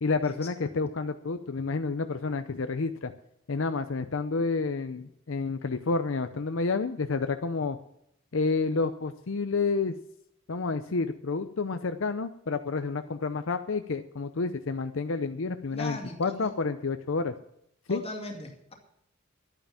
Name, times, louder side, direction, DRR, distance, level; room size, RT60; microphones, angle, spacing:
voice 1, 0.0-3.1 3.5-7.8 8.3-9.9 10.5-17.3 17.9-18.0, left 4 dB, 70° left, 9 dB, 0.6 m, -29 dB
voice 2, 15.7-16.5 17.9-18.7, left 1 dB, 30° left, 1 dB, 2.3 m, -39 dB
11.5 x 9.0 x 7.3 m, 0.75 s
head